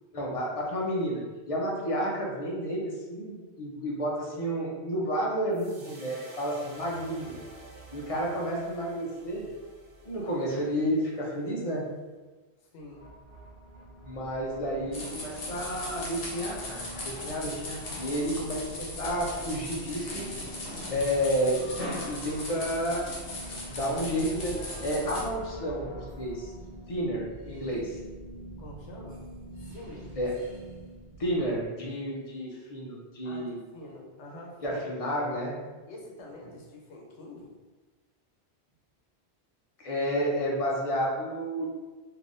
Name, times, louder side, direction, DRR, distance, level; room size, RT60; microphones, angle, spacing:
voice 1, 0.1-7.4 7.9-9.5 10.0-11.8 14.0-20.3 20.9-21.6 22.0-23.1 23.7-26.5 26.9-28.0 30.2-30.3 31.2-33.6 34.6-35.6 39.8-41.6, equal, 40° left, -3 dB, 0.6 m, -31 dB
sound 1, 5.5-11.8, right 1 dB, 50° right, 0.8 m, -50 dB
voice 2, 12.6-13.1 22.3-22.7 28.6-29.2 29.6-30.1 33.2-34.8 35.9-37.5, left 1 dB, 85° left, 0 dB, 1.0 m, -46 dB
sound 2, 12.8-31.6, right 1 dB, 65° right, 1.2 m, -45 dB
sound 3, 14.9-25.2, left 1 dB, 60° left, 1.0 m, -38 dB
3.5 x 2.7 x 2.6 m, 1.3 s
omnidirectional pair, 1.1 m